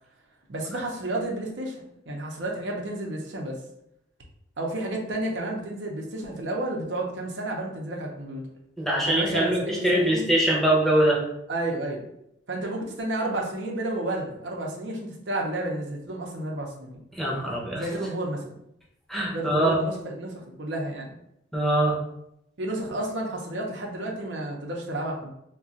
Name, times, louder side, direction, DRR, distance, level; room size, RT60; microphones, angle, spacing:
voice 1, 0.5-3.5 4.6-8.4 9.0-10.3 11.5-12.1 12.5-17.0 17.7-18.4 19.3-21.1 22.6-25.3, right 1 dB, 80° right, -1 dB, 0.7 m, -31 dB
voice 2, 8.8-11.2 17.2-17.8 19.1-19.8 21.5-22.0, right 1 dB, ahead, -4 dB, 0.6 m, -23 dB
2.4 x 2.2 x 3.8 m, 0.77 s
head